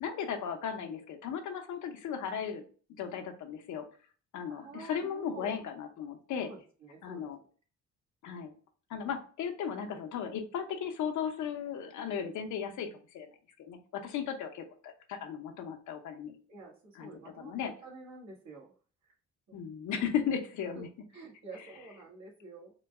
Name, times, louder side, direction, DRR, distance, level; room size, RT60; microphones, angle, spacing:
voice 1, 0.0-2.6 3.0-3.8 4.3-6.5 7.0-7.4 8.2-8.5 8.9-12.9 13.1-13.3 13.6-16.3 16.9-17.7 19.5-20.9, left 7 dB, 75° left, 5 dB, 0.7 m, -36 dB
voice 2, 4.4-5.6 6.4-7.3 16.5-18.7 19.5-19.6 20.7-20.8 21.1-22.7, right 3 dB, 65° right, -2 dB, 1.5 m, -48 dB
3.8 x 2.2 x 3.3 m, 0.40 s
cardioid pair, 90°, 30 cm